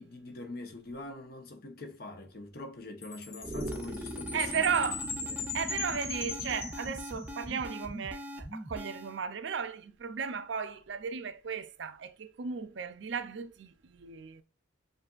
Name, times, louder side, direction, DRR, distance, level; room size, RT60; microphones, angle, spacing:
voice 1, 0.0-4.5 5.2-5.5, left 2 dB, 50° left, 0.9 m, -44 dB
Chime, 3.0-7.5, left 4 dB, 85° left, 1.4 m, -39 dB
sound 1, 3.4-9.2, equal, 10° right, 0.6 m, -40 dB
voice 2, 4.3-5.1 5.5-14.4, right 6 dB, 65° right, 0.5 m, -35 dB
7.4 x 2.6 x 2.4 m
head